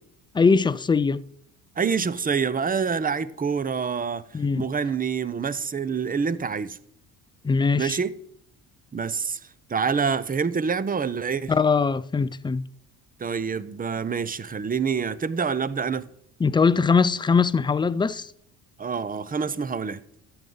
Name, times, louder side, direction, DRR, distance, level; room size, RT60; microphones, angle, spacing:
voice 1, 0.3-1.2 4.3-4.7 7.4-8.0 11.5-12.7 16.4-18.3, left 5 dB, 10° left, 0.4 m, -21 dB
voice 2, 1.8-4.2 4.5-6.8 7.8-8.1 8.9-9.4 9.7-11.5 13.2-16.0 18.8-20.0, right 6 dB, 20° right, 0.7 m, -26 dB
13.5 x 7.9 x 3.9 m
supercardioid pair, 70°, 40 cm